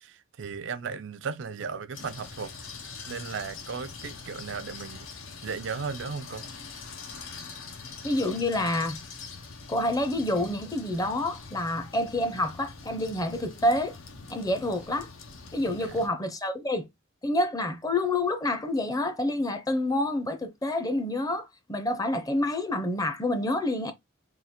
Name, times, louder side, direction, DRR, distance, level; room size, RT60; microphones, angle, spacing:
voice 1, 0.0-2.5 3.0-5.1 5.4-6.4 15.7-16.0, right 5 dB, 65° right, 0.4 m, -36 dB
sound 1, 1.9-16.1, left 4 dB, 80° left, 0.8 m, -43 dB
voice 2, 8.0-9.0 9.7-14.0 14.3-15.1 15.5-16.9 17.2-23.9, left 1 dB, 20° left, 0.6 m, -28 dB
3.7 x 2.4 x 4.2 m
head